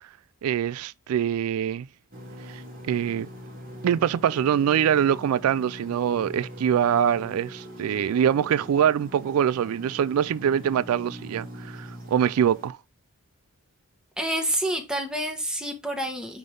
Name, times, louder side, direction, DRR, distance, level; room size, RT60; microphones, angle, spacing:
voice 1, 0.4-1.9 2.5-2.6 2.9-3.3 3.8-12.8, right 9 dB, 80° right, 0.3 m, -24 dB
sound 1, 2.1-12.7, equal, 40° right, 2.9 m, -42 dB
voice 2, 14.2-16.4, right 1 dB, 5° right, 1.3 m, -28 dB
9.4 x 3.4 x 3.8 m
head